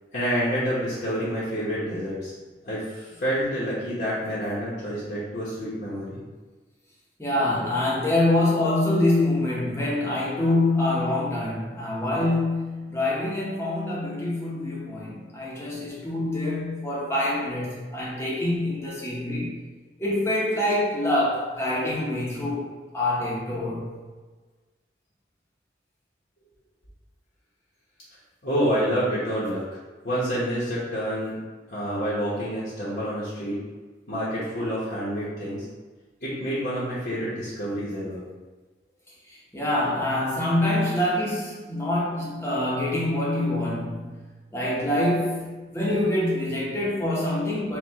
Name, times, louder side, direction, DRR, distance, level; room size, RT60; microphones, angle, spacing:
voice 1, 0.1-2.3 2.6-6.2 28.4-29.6 30.0-31.4 31.7-33.6 34.1-35.6 36.2-38.2, equal, 55° left, -10 dB, 1.1 m, -28 dB
voice 2, 7.2-19.7 20.0-23.9 39.3-44.2 44.5-47.8, left 1 dB, 15° left, -6 dB, 0.9 m, -25 dB
4.6 x 2.4 x 3.6 m, 1.3 s
head